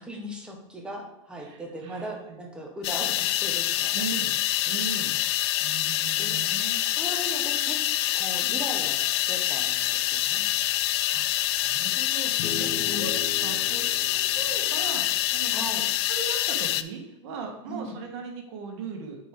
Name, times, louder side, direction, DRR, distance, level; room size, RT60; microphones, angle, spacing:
voice 1, 0.0-4.0 6.2-6.3 6.9-7.8 8.1-10.4 12.9-13.1 15.5-15.8 17.7-18.0, equal, 5° right, 0 dB, 1.1 m, -38 dB
voice 2, 1.4-2.4 3.9-4.3 4.6-5.1 5.6-6.8 8.4-8.6 11.1-13.8 14.1-15.5 16.1-19.3, right 5 dB, 60° right, 3 dB, 1.6 m, -38 dB
sound 1, 2.8-16.8, left 14 dB, 60° left, 0.4 m, -26 dB
sound 2, 12.4-16.0, left 4 dB, 40° left, 0.9 m, -39 dB
8.0 x 4.6 x 3.8 m, 0.89 s
supercardioid pair, 150°, 16 cm